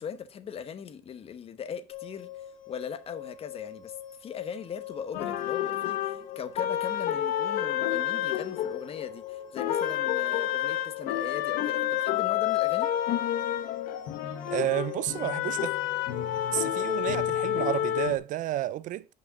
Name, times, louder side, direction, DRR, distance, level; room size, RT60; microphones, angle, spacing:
voice 1, 0.0-12.9, left 7 dB, 40° left, 0.9 m, -39 dB
sound 1, 1.9-17.0, left 11 dB, 65° left, 1.6 m, -43 dB
sound 2, 5.1-9.2 9.6-18.2, left 12 dB, 85° left, 0.9 m, -29 dB
voice 2, 14.5-15.7 16.5-19.1, right 14 dB, 65° right, 0.4 m, -30 dB
5.9 x 5.4 x 6.6 m
cardioid pair, 120°, 15 cm